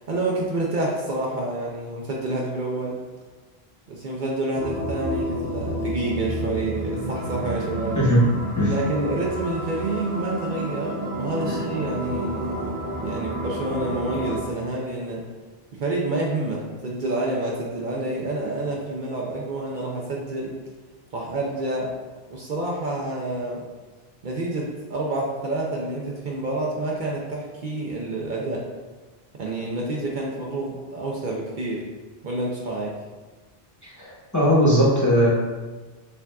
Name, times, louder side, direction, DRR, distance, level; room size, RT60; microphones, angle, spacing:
voice 1, 0.0-3.0 3.9-8.0 8.7-12.6 12.9-15.2 15.7-20.5 21.1-21.9 22.3-23.6 24.2-28.6 29.3-31.8 32.2-32.9, right 2 dB, 55° right, -3 dB, 0.7 m, -28 dB
sound 1, 4.5-14.4, right 1 dB, 10° right, 0.6 m, -30 dB
voice 2, 34.0-35.3, equal, 20° left, -7 dB, 0.8 m, -19 dB
6.9 x 2.4 x 2.3 m, 1.3 s
omnidirectional pair, 1.0 m